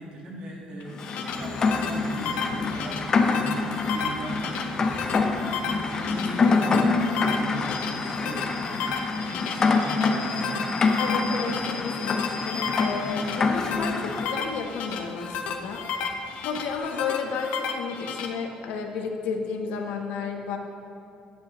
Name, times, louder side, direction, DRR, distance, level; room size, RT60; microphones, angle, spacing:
voice 1, 0.0-4.8 5.6-10.7, right 2 dB, 45° right, -1 dB, 1.6 m, -39 dB
sound 1, 0.8-18.3, left 6 dB, 65° left, 0.7 m, -33 dB
Rain, 1.0-14.3, left 4 dB, 25° left, 0.6 m, -26 dB
Rain / Train, 1.3-16.8, left 4 dB, 45° left, 1.9 m, -43 dB
voice 2, 11.0-15.8 16.2-20.6, left 5 dB, 90° left, 3 dB, 1.1 m, -32 dB
13.0 x 9.7 x 3.1 m, 2.5 s
cardioid pair, 180°, 3 cm